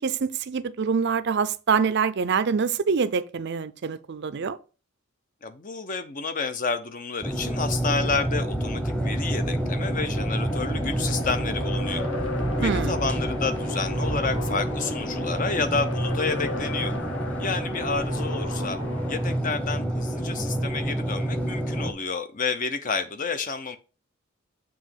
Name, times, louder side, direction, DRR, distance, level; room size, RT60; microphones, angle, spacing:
voice 1, 0.0-4.6 12.6-13.0, right 5 dB, 55° right, 0.4 m, -25 dB
voice 2, 5.4-12.0 12.6-16.9 17.4-18.8 19.1-23.8, left 4 dB, 40° left, 0.6 m, -30 dB
sound 1, 7.2-21.9, right 1 dB, 5° left, 1.0 m, -28 dB
sound 2, 10.0-19.4, left 2 dB, 65° left, 1.0 m, -36 dB
7.3 x 2.9 x 5.6 m
head